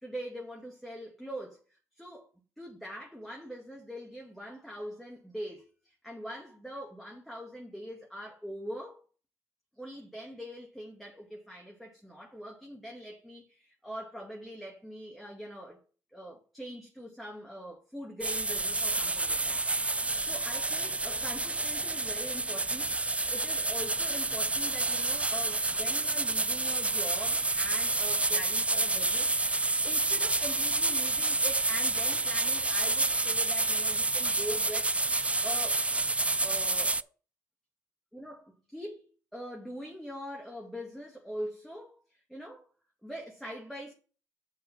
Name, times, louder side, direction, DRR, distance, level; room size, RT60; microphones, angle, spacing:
voice 1, 0.0-2.3 2.6-9.0 9.8-15.8 16.1-19.6 20.0-29.3 29.6-34.9 35.4-35.8 36.4-37.1 38.1-42.7 43.0-43.9, equal, ahead, 2.4 m, -43 dB
sound 1, 18.2-37.0, right 2 dB, 15° right, 0.4 m, -29 dB
8.0 x 5.6 x 5.7 m
supercardioid pair, 60°, 8 cm